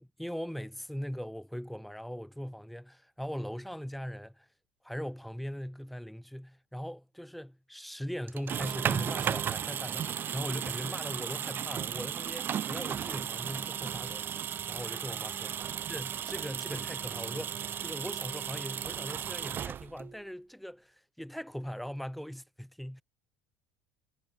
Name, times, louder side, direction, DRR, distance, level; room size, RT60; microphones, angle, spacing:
voice 1, 0.0-4.5 4.8-14.4 14.7-15.5 15.9-23.0, equal, ahead, 7.2 m, -40 dB
sound 1, 8.3-20.2, right 9 dB, 35° right, 3.5 m, -35 dB
supercardioid pair, 125°, 6 cm